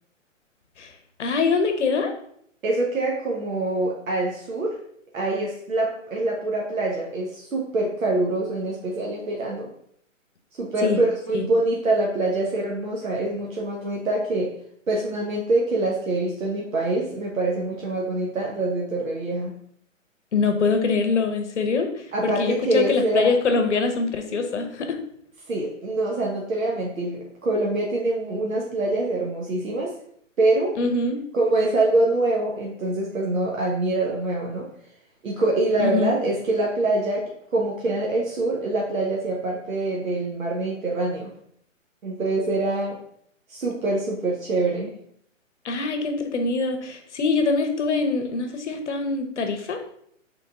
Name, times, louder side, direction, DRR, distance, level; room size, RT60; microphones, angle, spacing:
voice 1, 1.2-2.1 10.8-11.0 11.3-11.5 20.3-21.9 22.2-25.0 30.8-31.2 35.8-36.1 45.6-49.8, left 4 dB, 60° left, 6 dB, 0.8 m, -23 dB
voice 2, 2.6-4.7 5.1-9.7 10.6-14.5 14.9-19.5 22.1-23.3 25.5-29.9 30.4-30.7 31.3-34.7 35.2-41.3 42.0-43.0 43.5-44.9, right 2 dB, 90° right, -2 dB, 1.1 m, -25 dB
3.7 x 3.5 x 3.5 m, 0.68 s
hypercardioid pair, 165°, 39 cm